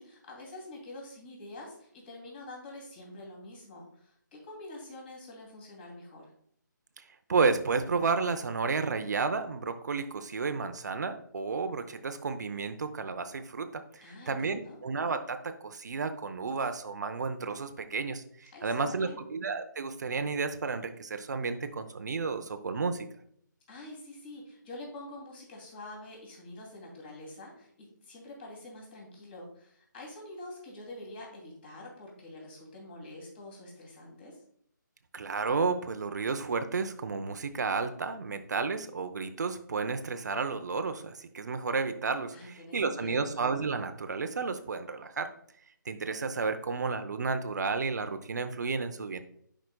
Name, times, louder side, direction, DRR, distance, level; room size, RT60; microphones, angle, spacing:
voice 1, 0.0-6.3 14.0-14.8 18.5-19.3 23.7-34.4 42.3-43.3, left 1 dB, 30° left, -1 dB, 2.7 m, -46 dB
voice 2, 7.0-23.1 35.1-45.3 45.9-49.2, right 4 dB, 60° right, 8 dB, 0.6 m, -32 dB
10.5 x 5.0 x 2.3 m, 0.67 s
figure-of-eight pair, 160°, 11 cm